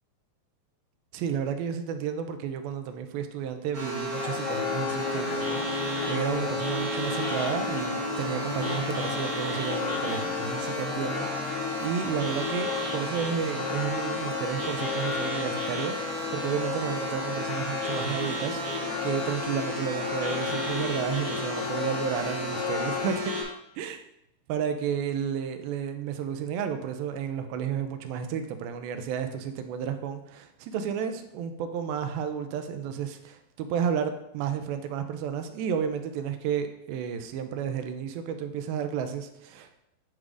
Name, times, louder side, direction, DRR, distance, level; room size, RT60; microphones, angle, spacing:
voice 1, 1.1-5.7 6.1-23.3 23.8-24.0 24.5-39.8, right 8 dB, 85° right, 8 dB, 2.4 m, -32 dB
sound 1, 3.7-23.4, equal, 50° right, 1.0 m, -33 dB
sound 2, 4.1-23.1, left 8 dB, 85° left, 1.9 m, -34 dB
9.2 x 4.7 x 2.5 m, 0.81 s
omnidirectional pair, 4.2 m